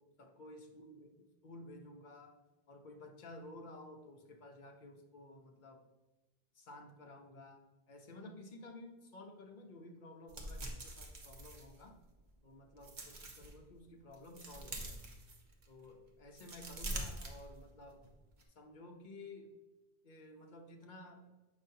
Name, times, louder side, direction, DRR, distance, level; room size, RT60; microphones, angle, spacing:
voice 1, 0.2-1.1 1.4-2.4 2.7-5.8 6.6-12.0 12.4-15.0 15.7-18.1 18.5-19.6 20.0-21.3, left 1 dB, 50° left, 3 dB, 0.9 m, -53 dB
sound 1, 10.3-12.2 12.7-13.5 14.0-15.8 16.2-18.0 18.3-18.4, right 1 dB, 50° right, 1.0 m, -45 dB
7.0 x 5.6 x 2.7 m, 1.1 s
omnidirectional pair, 1.1 m